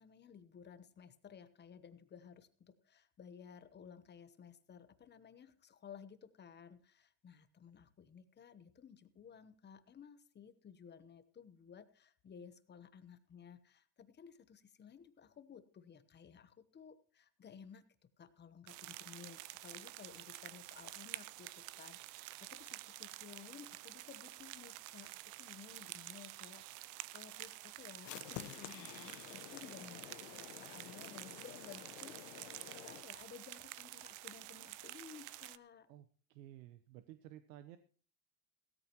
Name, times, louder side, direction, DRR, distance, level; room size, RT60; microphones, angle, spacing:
voice 1, 0.0-17.8 18.2-35.9, left 7 dB, 20° left, 12 dB, 0.9 m, -56 dB
sound 1, 18.7-35.6, right 18 dB, 40° right, 0.5 m, -50 dB
sound 2, 28.0-33.0, left 14 dB, 75° left, 1.3 m, -51 dB
voice 2, 35.9-37.8, right 13 dB, 85° right, 11 dB, 1.1 m, -54 dB
17.0 x 13.5 x 3.0 m, 0.41 s
supercardioid pair, 125°, 49 cm